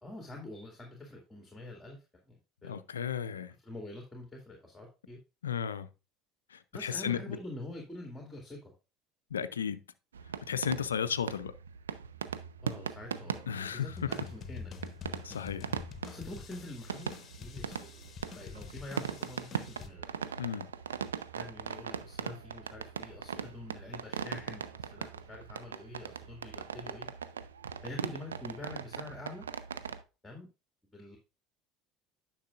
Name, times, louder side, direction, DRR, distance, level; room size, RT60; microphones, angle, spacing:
voice 1, 0.0-2.0 2.3-2.8 3.6-5.2 6.7-8.7 12.6-14.7 16.1-17.1 17.4-20.1 21.3-27.1 27.8-29.5 30.2-30.5 30.9-31.2, left 2 dB, 10° left, 2.2 m, -46 dB
voice 2, 2.6-3.5 5.4-5.9 6.5-7.4 9.3-9.8 10.5-11.5 13.5-14.1 15.2-15.7 20.4-20.7, left 8 dB, 85° left, 0.4 m, -34 dB
sound 1, 10.1-30.0, right 7 dB, 85° right, 0.4 m, -40 dB
sound 2, 13.9-19.9, left 7 dB, 40° left, 1.0 m, -47 dB
10.0 x 6.0 x 2.4 m
hypercardioid pair, 65°, 0 cm